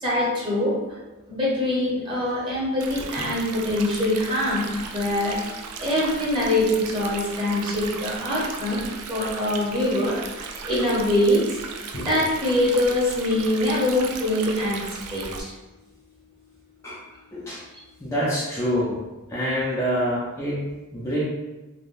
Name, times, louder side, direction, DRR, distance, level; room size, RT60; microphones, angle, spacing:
voice 1, 0.0-1.0 1.3-11.6 11.9-15.5, left 1 dB, 20° right, -7 dB, 1.0 m, -24 dB
Stream, 2.8-15.4, right 5 dB, 85° right, 0.4 m, -36 dB
voice 2, 17.3-17.6 18.0-19.0 19.3-21.2, equal, 15° left, -8 dB, 0.4 m, -26 dB
3.4 x 2.2 x 2.5 m, 1.1 s
head